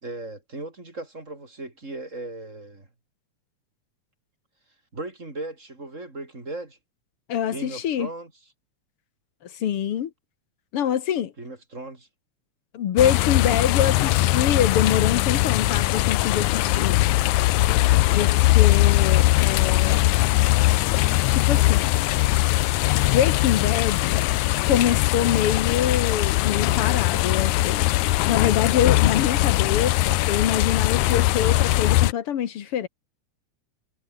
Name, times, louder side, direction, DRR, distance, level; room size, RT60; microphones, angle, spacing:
voice 1, 0.0-2.9 4.9-6.8 7.5-8.3 11.4-12.1, right 2 dB, 25° right, 4.2 m, -37 dB
voice 2, 7.3-8.1 9.4-10.1 10.7-11.3 12.7-17.0 18.1-20.2 21.3-21.9 23.1-24.3 24.6-27.9 28.3-32.9, left 9 dB, 55° left, 1.9 m, -25 dB
sound 1, 13.0-32.1, left 17 dB, 85° left, 2.1 m, -20 dB
omnidirectional pair, 3.4 m